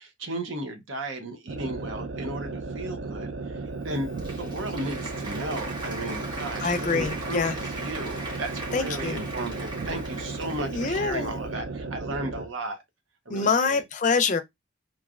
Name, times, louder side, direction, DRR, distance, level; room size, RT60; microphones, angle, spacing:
voice 1, 0.0-3.3 3.8-12.8 13.3-13.8, right 1 dB, 85° right, 0.8 m, -35 dB
sound 1, 1.5-12.5, right 3 dB, 70° right, 0.5 m, -35 dB
Applause, 3.8-11.4, right 2 dB, 25° right, 0.9 m, -39 dB
voice 2, 6.6-7.6 8.7-9.2 10.6-11.3 13.3-14.4, left 4 dB, 40° left, 0.4 m, -25 dB
3.1 x 2.5 x 2.4 m
head